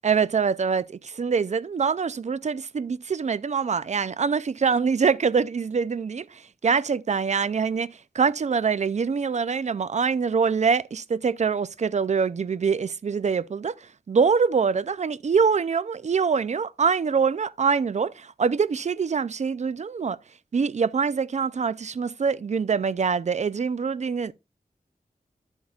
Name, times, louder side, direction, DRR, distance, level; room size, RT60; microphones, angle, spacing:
voice 1, 0.0-20.2 20.5-24.3, right 5 dB, 50° right, 0.4 m, -24 dB
11.0 x 8.0 x 2.4 m
wide cardioid pair, 85°, 16 cm